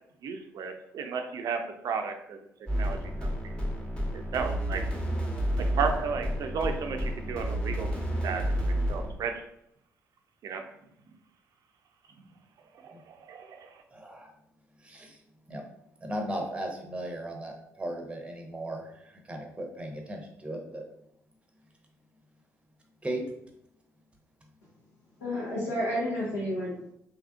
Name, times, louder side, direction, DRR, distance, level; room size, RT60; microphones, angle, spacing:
voice 1, 0.2-2.4 2.8-3.0 3.4-3.7 4.3-4.8 5.6-7.9 8.2-8.5 8.9-9.3 10.4-10.6 12.8-12.9 13.3-13.6, right 5 dB, 50° right, 5 dB, 0.4 m, -33 dB
sound 1, 2.7-9.1, equal, 10° left, 1.1 m, -30 dB
voice 2, 13.9-14.3 14.8-15.2 15.5-15.6 16.0-20.8 23.0-23.2, right 1 dB, 15° right, 2 dB, 0.8 m, -36 dB
voice 3, 25.2-26.9, equal, 80° left, -10 dB, 1.0 m, -31 dB
3.4 x 3.0 x 2.4 m, 0.76 s
figure-of-eight pair, 45°, 8 cm